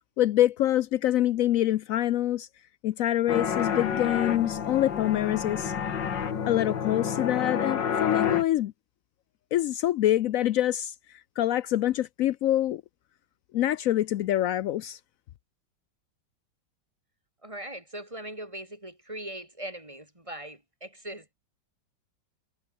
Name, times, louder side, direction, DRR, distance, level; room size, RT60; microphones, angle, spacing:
voice 1, 0.2-2.5 2.8-5.7 6.5-8.7 9.5-10.9 11.4-12.8 13.5-15.0, left 13 dB, 90° left, 0.7 m, -25 dB
sound 1, 3.3-8.4, left 7 dB, 70° left, 2.5 m, -29 dB
voice 2, 17.4-21.3, right 1 dB, 15° right, 4.3 m, -40 dB
omnidirectional pair, 2.0 m